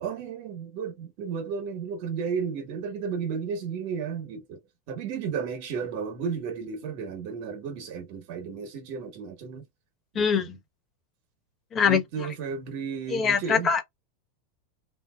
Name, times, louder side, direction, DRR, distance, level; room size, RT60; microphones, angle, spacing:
voice 1, 0.0-4.6 4.9-9.6 10.1-10.6 11.8-13.7, right 6 dB, 55° right, 1.3 m, -33 dB
voice 2, 10.1-10.6 11.7-12.0 13.1-13.8, left 6 dB, 25° left, 1.1 m, -23 dB
3.4 x 2.9 x 2.3 m
supercardioid pair, 135°, 0 cm